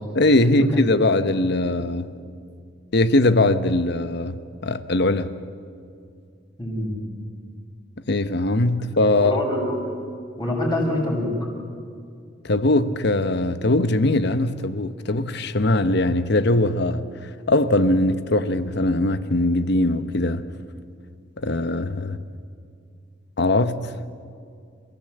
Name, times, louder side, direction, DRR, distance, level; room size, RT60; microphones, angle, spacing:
voice 1, 0.1-2.1 2.9-4.3 4.6-5.3 8.1-9.4 12.4-17.0 17.5-20.4 21.4-22.2 23.4-23.8, left 2 dB, 60° left, 1.0 m, -21 dB
voice 2, 6.6-6.9 9.1-9.8 10.4-11.3, left 1 dB, 25° left, 6.4 m, -25 dB
29.5 x 16.0 x 7.9 m
head